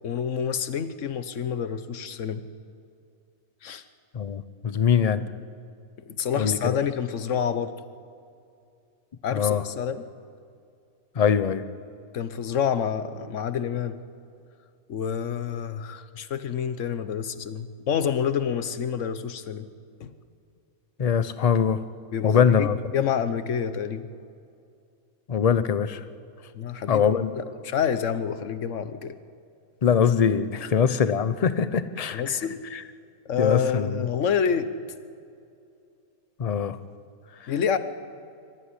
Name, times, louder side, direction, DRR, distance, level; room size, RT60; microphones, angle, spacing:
voice 1, 0.0-2.5 3.6-3.8 6.1-7.7 9.2-10.1 12.1-14.0 14.9-19.7 20.0-20.1 22.1-22.7 22.9-24.1 26.5-29.2 30.6-30.7 32.1-32.6 33.3-34.7 37.5-37.8, left 7 dB, 55° left, 12 dB, 1.2 m, -28 dB
voice 2, 4.1-5.3 6.4-6.8 9.3-9.6 11.2-11.6 21.0-21.8 22.2-22.8 25.3-26.0 26.9-27.3 29.8-32.2 32.7-32.8 33.4-34.0 36.4-36.8, left 7 dB, 40° left, 13 dB, 0.5 m, -22 dB
24.0 x 14.0 x 9.9 m, 2.5 s
omnidirectional pair, 1.6 m